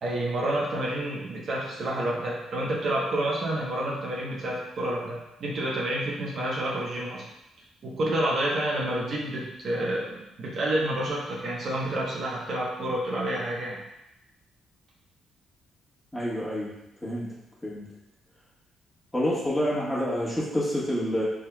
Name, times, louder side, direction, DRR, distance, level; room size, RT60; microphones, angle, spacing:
voice 1, 0.0-7.2 7.8-13.8, right 1 dB, 55° right, -3 dB, 0.9 m, -29 dB
voice 2, 16.1-16.7 17.0-17.3 17.6-17.8 19.1-21.2, equal, 10° left, -7 dB, 1.4 m, -27 dB
4.4 x 3.7 x 2.3 m, 0.88 s
cardioid pair, 90°, 0 cm